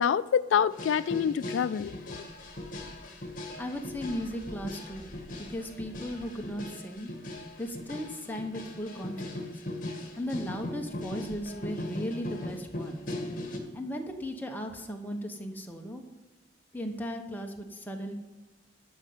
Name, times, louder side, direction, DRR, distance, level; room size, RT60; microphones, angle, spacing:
voice 1, 0.0-2.1, left 8 dB, 80° left, 16 dB, 0.3 m, -26 dB
sound 1, 0.7-13.6, left 1 dB, 45° left, 1.8 m, -39 dB
voice 2, 3.6-5.1 5.5-7.1 7.6-9.6 10.2-13.1 13.7-16.0 16.7-18.1, equal, 10° left, 2 dB, 1.1 m, -36 dB
12.0 x 5.4 x 7.7 m, 1.2 s
head